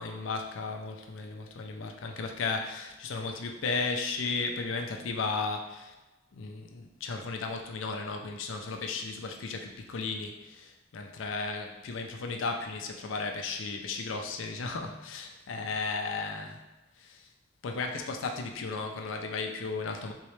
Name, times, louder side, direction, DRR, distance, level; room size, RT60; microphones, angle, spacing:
voice 1, 0.0-5.9 6.3-16.6 17.0-17.3 17.6-20.1, left 4 dB, 80° left, 4 dB, 0.5 m, -35 dB
3.7 x 3.1 x 3.1 m, 1.0 s
head